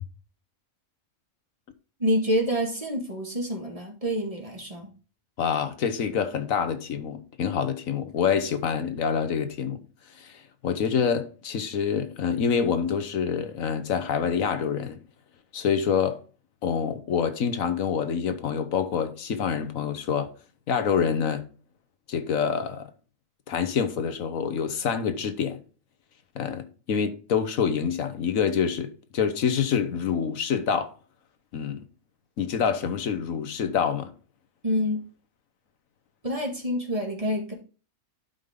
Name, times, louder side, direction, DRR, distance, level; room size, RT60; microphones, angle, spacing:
voice 1, 2.0-4.9 34.6-35.0 36.2-37.5, equal, 25° right, 1.9 m, -27 dB
voice 2, 5.4-9.8 10.2-15.0 15.5-16.2 16.6-20.3 20.7-21.5 22.1-22.9 23.5-25.6 26.3-30.9 31.5-31.8 32.4-34.1, left 7 dB, 80° left, 1.4 m, -26 dB
11.5 x 5.4 x 3.7 m
omnidirectional pair, 1.4 m